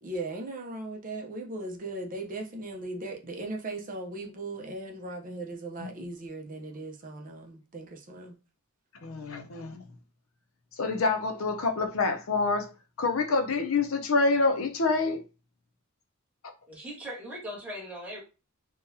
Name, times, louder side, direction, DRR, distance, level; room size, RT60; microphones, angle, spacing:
voice 1, 0.0-8.4, right 2 dB, 40° right, 0.7 m, -38 dB
voice 2, 9.0-9.8 10.8-12.7 13.0-15.2, left 3 dB, 80° left, 0.7 m, -27 dB
voice 3, 16.7-18.2, equal, 5° right, 1.3 m, -39 dB
3.8 x 2.3 x 2.7 m
head